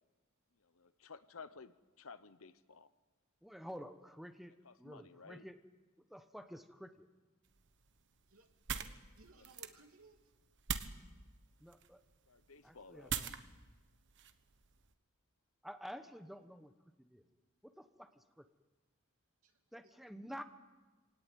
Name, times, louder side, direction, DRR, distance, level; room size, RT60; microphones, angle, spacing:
voice 1, 0.6-2.9 4.6-5.4 9.4-9.5 12.3-13.1, left 4 dB, 70° left, 13 dB, 1.1 m, -55 dB
voice 2, 3.4-5.6 6.1-7.1 11.6-12.0 12.6-13.3 15.6-16.7 17.0-17.2 17.6-18.4 19.7-20.4, equal, ahead, 8 dB, 1.2 m, -50 dB
sound 1, 7.4-14.9, right 7 dB, 60° right, 1.3 m, -45 dB
voice 3, 8.7-10.2 19.4-19.9, right 2 dB, 80° right, 4 dB, 2.9 m, -63 dB
26.0 x 18.0 x 9.4 m, 1.3 s
head